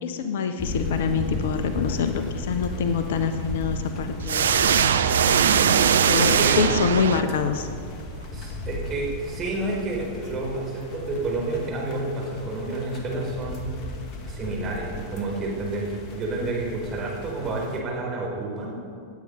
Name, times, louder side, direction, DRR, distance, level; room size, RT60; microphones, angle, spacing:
voice 1, 0.0-4.5 5.2-5.6 6.1-7.7, left 6 dB, 55° left, 8 dB, 0.8 m, -26 dB
sound 1, 0.6-17.8, left 2 dB, 40° left, 1.6 m, -35 dB
sound 2, 4.3-7.6, right 8 dB, 65° right, 0.5 m, -20 dB
voice 2, 5.4-6.6 8.3-13.7 14.3-18.7, right 2 dB, 25° right, -3 dB, 4.3 m, -30 dB
18.5 x 8.8 x 5.3 m, 2.4 s
figure-of-eight pair, 90°, 0 cm